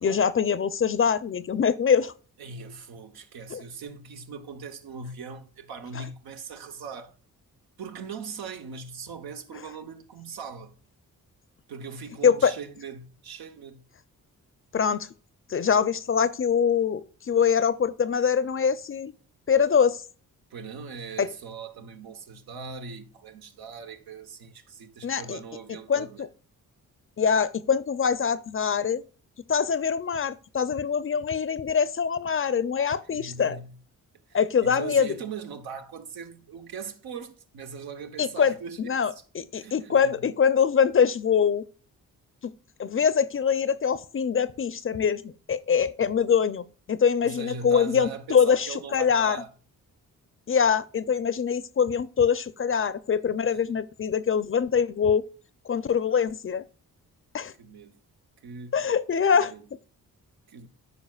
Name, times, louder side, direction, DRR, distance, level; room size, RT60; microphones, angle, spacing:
voice 1, 0.0-2.1 3.5-3.6 12.2-12.5 14.7-15.1 15.5-19.1 19.5-20.0 21.2-21.3 25.0-25.4 25.9-26.3 27.2-29.0 29.5-33.6 34.3-35.1 38.2-41.6 42.8-49.4 50.5-55.3 55.7-56.6 57.3-57.5 58.7-59.5, left 7 dB, 35° left, 0.5 m, -24 dB
voice 2, 2.4-7.2 7.8-10.8 11.7-13.8 20.5-26.3 33.0-33.8 34.3-39.2 39.5-40.3 47.2-49.5 53.5-53.6 57.6-58.0 58.4-58.8 59.3-59.7 60.5-60.7, right 5 dB, 85° right, 1.0 m, -40 dB
14.0 x 4.9 x 2.4 m
cardioid pair, 75°, 36 cm